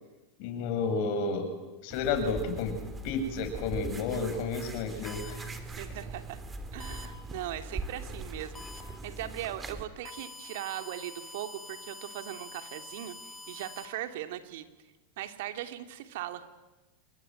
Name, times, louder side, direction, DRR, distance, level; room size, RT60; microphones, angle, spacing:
voice 1, 0.4-1.5 1.8-2.8 3.0-5.4, left 4 dB, 60° left, 6 dB, 7.8 m, -31 dB
sound 1, 1.9-9.8, right 2 dB, 20° right, 3.8 m, -41 dB
sound 2, 5.1-5.3 6.8-7.1 8.6-8.8 10.1-13.9, left 2 dB, 20° left, 2.7 m, -46 dB
voice 2, 5.7-6.4 6.7-14.7 15.2-16.4, right 13 dB, 70° right, 7 dB, 2.9 m, -39 dB
28.0 x 21.5 x 9.4 m, 1.1 s
hypercardioid pair, 105°, 0 cm